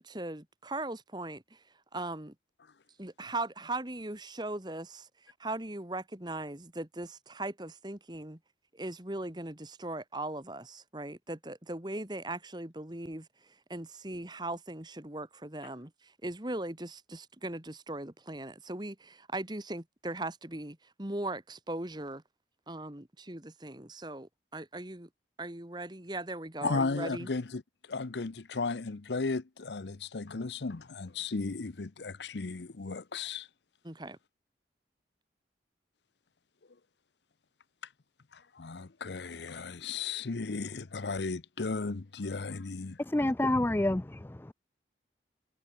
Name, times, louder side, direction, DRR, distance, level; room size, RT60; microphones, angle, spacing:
voice 1, 0.0-1.6 1.9-2.3 3.0-8.4 8.7-22.2 22.7-25.1 25.4-27.3 33.8-34.2, right 2 dB, 25° right, 1.8 m, -39 dB
voice 2, 26.6-33.5 38.3-43.0, left 4 dB, 75° left, 0.8 m, -35 dB
voice 3, 43.0-44.5, left 1 dB, 10° left, 0.4 m, -28 dB
head